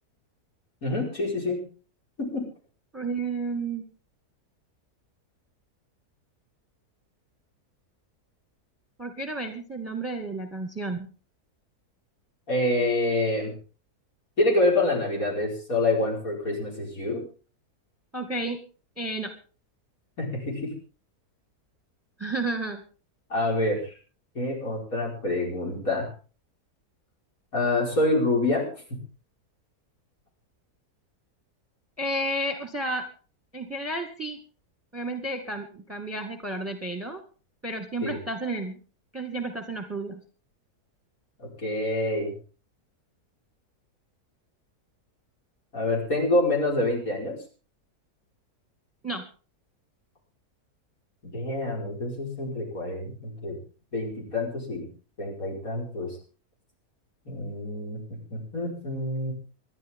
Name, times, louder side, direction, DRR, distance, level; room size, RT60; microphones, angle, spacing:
voice 1, 0.8-1.6 2.2-2.4 12.5-13.5 14.4-17.2 20.2-20.7 23.3-23.9 24.4-26.1 27.5-28.6 28.9-29.0 38.0-38.2 41.6-42.3 45.7-47.4 51.2-53.6 53.9-54.9 55.2-56.2 57.3-58.0 58.3-59.3, left 2 dB, 60° left, -2 dB, 5.7 m, -27 dB
voice 2, 2.9-3.8 9.0-11.1 18.1-18.6 19.0-19.3 22.2-22.8 32.0-33.1 33.5-34.4 34.9-37.2 37.6-38.8 39.1-40.2 49.0-49.2, right 2 dB, 10° right, 6 dB, 1.8 m, -31 dB
26.0 x 11.0 x 3.7 m, 0.37 s
omnidirectional pair, 1.7 m